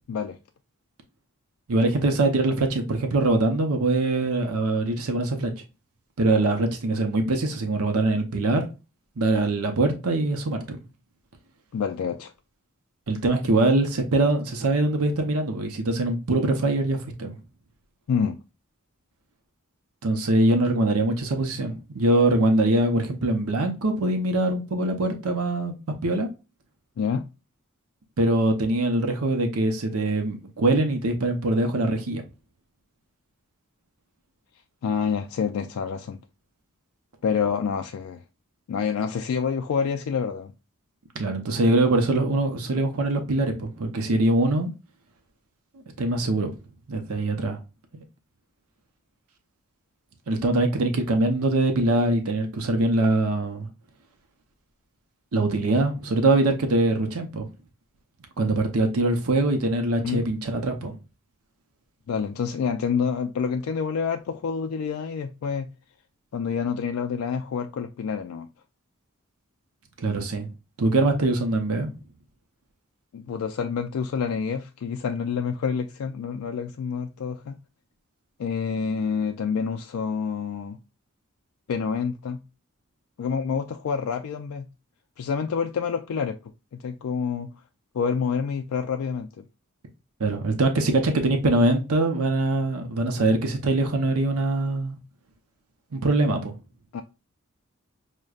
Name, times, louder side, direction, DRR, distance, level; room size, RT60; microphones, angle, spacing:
voice 1, 1.7-5.5 6.2-8.7 9.2-10.8 13.1-17.4 20.0-25.7 26.0-26.3 28.2-32.2 41.1-44.7 46.0-46.5 46.9-47.6 47.9-48.0 50.3-53.7 55.3-57.5 58.4-60.9 70.0-70.5 70.8-71.9 90.2-95.0 95.9-96.6, right 2 dB, 85° right, 0.7 m, -23 dB
voice 2, 11.7-12.3 18.1-18.4 27.0-27.3 34.8-36.2 37.2-38.2 38.7-40.5 60.0-60.3 62.1-65.7 66.3-68.5 73.1-77.6 78.4-80.8 81.7-82.4 83.2-84.7 85.2-87.5 87.9-89.4 96.9-97.0, left 6 dB, 70° left, 0.3 m, -28 dB
6.3 x 2.2 x 2.3 m
head